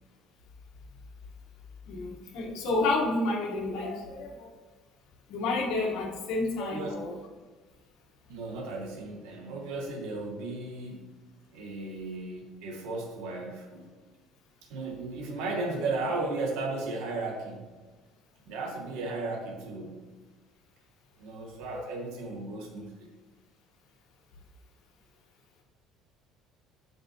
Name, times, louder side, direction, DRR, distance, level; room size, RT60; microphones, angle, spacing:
voice 1, 1.9-4.5 5.3-7.1 21.7-21.9, left 2 dB, 70° left, -3 dB, 1.4 m, -30 dB
voice 2, 6.6-6.9 8.3-11.1 11.5-13.9 14.7-17.7 18.5-20.1 21.2-23.1, right 3 dB, 80° right, 2 dB, 1.5 m, -35 dB
7.7 x 5.3 x 3.0 m, 1.3 s
cardioid pair, 145°, 0 cm